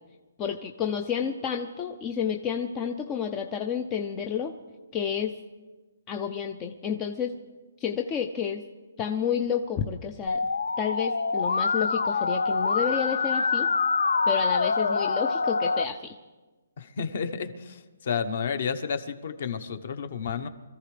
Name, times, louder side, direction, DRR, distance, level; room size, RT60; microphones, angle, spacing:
voice 1, 0.4-4.5 4.9-5.3 6.1-7.3 7.8-8.6 9.0-10.4 10.8-13.7 14.3-16.2, left 7 dB, 15° left, 4 dB, 0.5 m, -30 dB
Musical instrument, 10.3-15.8, left 4 dB, 85° left, 0.8 m, -25 dB
voice 2, 16.8-20.5, left 6 dB, 40° left, 10 dB, 1.0 m, -31 dB
25.5 x 14.5 x 3.3 m, 1.2 s
hypercardioid pair, 175°, 0 cm